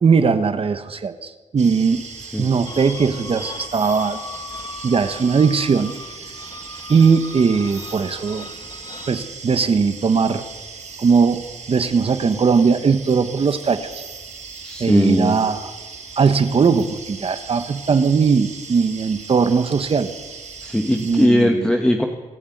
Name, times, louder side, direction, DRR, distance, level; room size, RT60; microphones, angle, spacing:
voice 1, 0.0-2.1 2.4-4.2 4.8-5.9 6.9-8.5 9.1-10.4 11.0-11.4 11.7-13.8 14.8-15.7 16.2-20.1 21.0-21.7, right 5 dB, 45° right, 10 dB, 1.2 m, -19 dB
sound 1, 1.6-21.3, right 5 dB, 65° right, 5.2 m, -38 dB
sound 2, 2.6-9.2, left 4 dB, 30° left, 1.5 m, -38 dB
voice 2, 14.6-15.4 20.6-22.1, left 1 dB, 5° left, 3 dB, 1.5 m, -19 dB
27.0 x 11.5 x 9.2 m, 1.3 s
wide cardioid pair, 125°, 13 cm